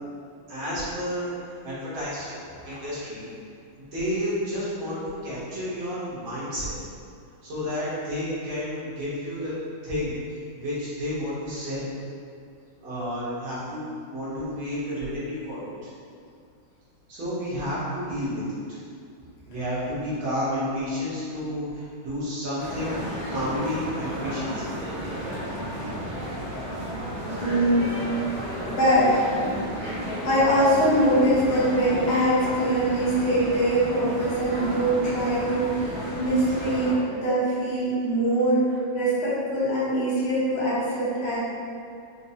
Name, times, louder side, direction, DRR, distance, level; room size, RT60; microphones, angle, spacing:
voice 1, 0.5-1.3 1.6-2.4 2.6-3.3 3.9-6.7 7.4-9.5 9.8-11.9 12.8-15.9 17.1-18.4 19.5-22.9 23.3-24.6, equal, 80° right, -10 dB, 2.0 m, -31 dB
sound 1, 22.6-36.9, equal, 40° right, 0.8 m, -33 dB
voice 2, 27.4-27.9 28.7-29.1 30.2-41.4, right 1 dB, 75° left, -9 dB, 1.7 m, -23 dB
5.2 x 2.0 x 2.7 m, 2.4 s
omnidirectional pair, 2.2 m